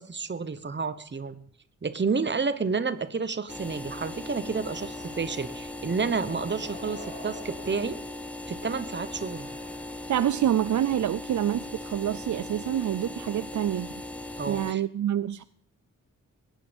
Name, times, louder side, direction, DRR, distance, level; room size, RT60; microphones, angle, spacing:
voice 1, 0.0-1.4 1.8-8.0 8.5-9.5 14.4-14.8, right 4 dB, 35° right, 1.1 m, -30 dB
sound 1, 1.9-10.0, left 1 dB, 20° left, 4.0 m, -51 dB
sound 2, 3.5-14.7, left 1 dB, 5° left, 0.8 m, -39 dB
voice 2, 10.1-13.9 14.5-15.4, right 11 dB, 65° right, 0.5 m, -27 dB
22.0 x 9.5 x 5.3 m
wide cardioid pair, 140°, 32 cm